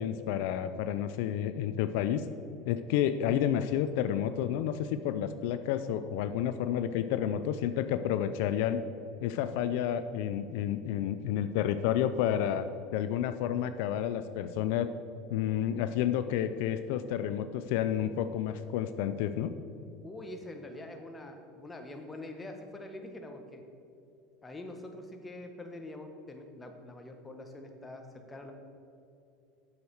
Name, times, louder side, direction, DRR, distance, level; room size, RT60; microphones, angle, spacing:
voice 1, 0.0-2.2 2.7-8.8 9.2-12.7 12.9-14.9 15.3-19.5, left 10 dB, 75° left, 11 dB, 0.3 m, -30 dB
voice 2, 20.0-23.6 24.4-28.5, left 1 dB, 15° left, 4 dB, 1.0 m, -44 dB
8.3 x 6.5 x 4.5 m, 2.7 s
supercardioid pair, 125°, 0 cm